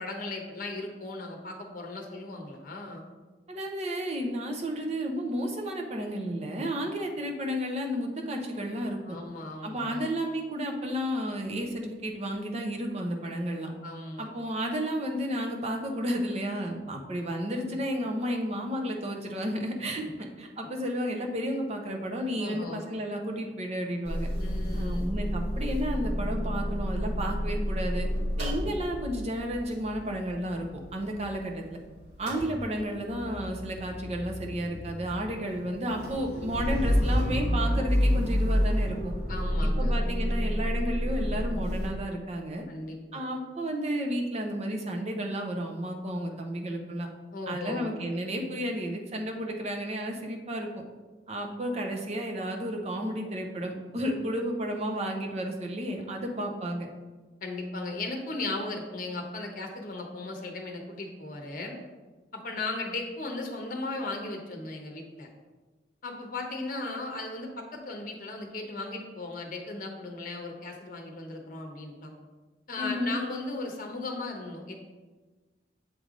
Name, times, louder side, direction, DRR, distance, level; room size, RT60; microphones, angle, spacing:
voice 1, 0.0-3.0 9.0-10.0 13.2-13.3 13.6-14.3 22.4-22.8 24.4-25.0 39.3-40.0 42.7-43.2 47.3-47.9 57.4-61.8 62.3-65.3 66.0-72.1 72.7-74.7, left 2 dB, 50° left, 2 dB, 0.9 m, -37 dB
voice 2, 3.5-9.2 9.6-13.7 14.2-24.3 24.7-28.1 28.4-30.7 30.9-31.6 32.2-39.1 39.6-42.7 43.1-47.1 47.5-50.7 51.3-56.9 72.8-73.1, equal, 35° right, 2 dB, 0.7 m, -32 dB
Motor vehicle (road) / Engine starting / Idling, 24.0-31.8 32.0-41.9, equal, 65° right, 1.9 m, -29 dB
7.6 x 3.3 x 3.8 m, 1.3 s
head